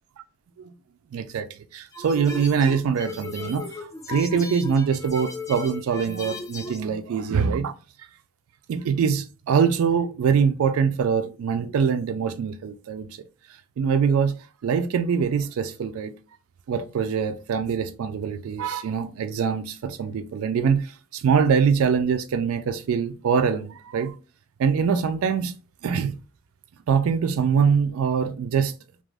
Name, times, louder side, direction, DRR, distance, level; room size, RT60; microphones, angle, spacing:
voice 1, 1.1-8.1 8.7-13.1 13.8-14.3 14.6-16.1 16.7-24.1 24.6-25.5 25.8-26.2 26.9-28.7, right 6 dB, 80° right, 0.3 m, -23 dB
sound 1, 1.9-6.8, left 3 dB, 15° left, 0.4 m, -36 dB
2.4 x 2.0 x 3.2 m
head